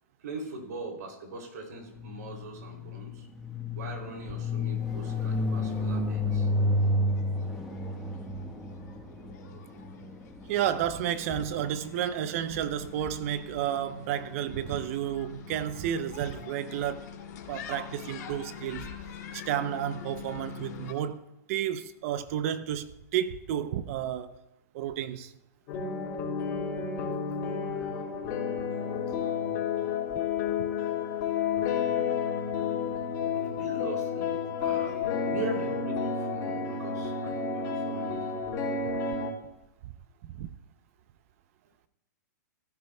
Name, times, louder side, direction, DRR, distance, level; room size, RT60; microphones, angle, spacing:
voice 1, 0.2-3.3 3.7-6.5 27.6-27.9 33.3-38.3, right 3 dB, 75° right, 2.8 m, -41 dB
sound 1, 1.9-11.9, left 1 dB, 5° right, 1.2 m, -31 dB
sound 2, 4.9-20.9, left 8 dB, 70° left, 2.4 m, -45 dB
voice 2, 10.5-17.1 17.5-18.9 19.3-24.3 24.7-25.3 40.2-40.5, right 10 dB, 50° right, 0.6 m, -31 dB
sound 3, 25.7-39.3, left 6 dB, 40° left, 4.0 m, -31 dB
16.0 x 9.9 x 2.2 m
hypercardioid pair, 130°, 10 cm